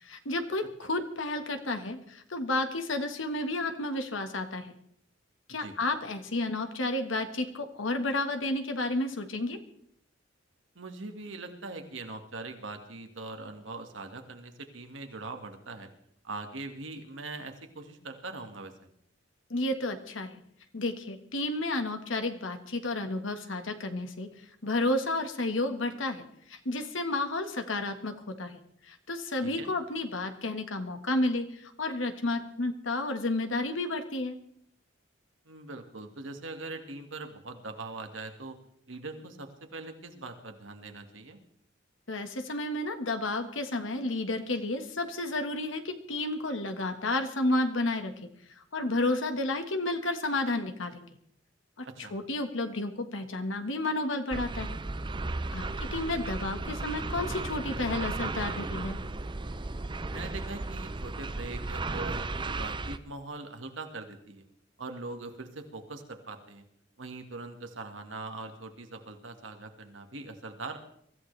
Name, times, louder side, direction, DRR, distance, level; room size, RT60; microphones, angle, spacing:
voice 1, 0.0-4.7 5.5-9.6 19.5-20.3 20.7-24.3 24.6-34.4 42.1-48.1 48.7-51.2 51.8-54.8 55.5-59.0, left 2 dB, 90° left, 7 dB, 1.6 m, -31 dB
voice 2, 10.8-15.9 16.2-18.9 29.4-29.7 35.5-38.6 38.9-41.4 51.8-52.1 55.6-55.9 60.1-64.4 64.8-66.6 67.0-70.8, right 3 dB, 80° right, 5 dB, 1.9 m, -42 dB
sound 1, 54.3-63.0, right 3 dB, 25° right, 0.6 m, -35 dB
23.5 x 14.5 x 3.3 m, 0.71 s
head